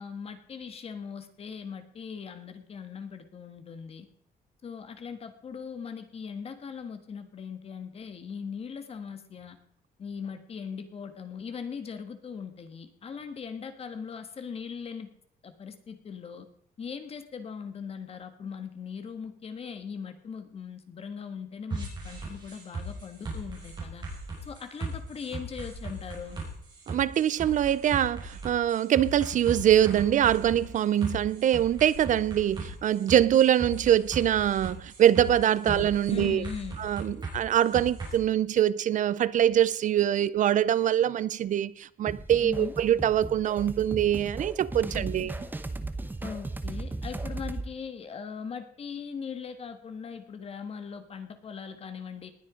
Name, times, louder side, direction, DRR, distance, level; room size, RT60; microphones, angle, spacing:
voice 1, 0.0-4.1 4.6-9.6 10.0-15.1 15.4-16.5 16.8-24.1 24.4-26.4 35.6-35.8 36.1-36.8 42.4-42.8 44.9-45.3 46.2-52.3, left 6 dB, 40° left, 1.6 m, -39 dB
sound 1, 21.7-38.1, right 2 dB, 30° right, 6.3 m, -38 dB
voice 2, 26.9-36.4 36.8-45.4, right 11 dB, 55° right, 0.5 m, -24 dB
sound 2, 42.1-47.7, right 2 dB, 10° right, 0.9 m, -36 dB
19.5 x 9.3 x 5.1 m
cardioid pair, 165°, 15 cm